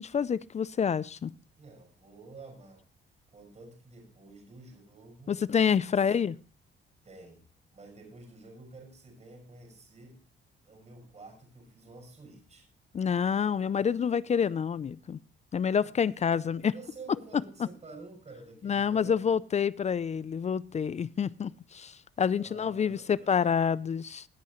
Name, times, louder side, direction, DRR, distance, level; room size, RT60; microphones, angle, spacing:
voice 1, 0.0-1.3 5.3-6.3 12.9-15.2 15.5-16.7 18.6-24.3, left 7 dB, 35° left, 20 dB, 0.5 m, -28 dB
voice 2, 1.6-2.8 3.3-5.3 5.8-6.2 7.0-7.4 7.7-10.2 10.6-12.7 15.8-15.9 16.6-19.4 22.3-23.5, right 3 dB, 35° right, 2 dB, 5.7 m, -50 dB
18.0 x 8.4 x 3.0 m, 0.36 s
cardioid pair, 90°, 20 cm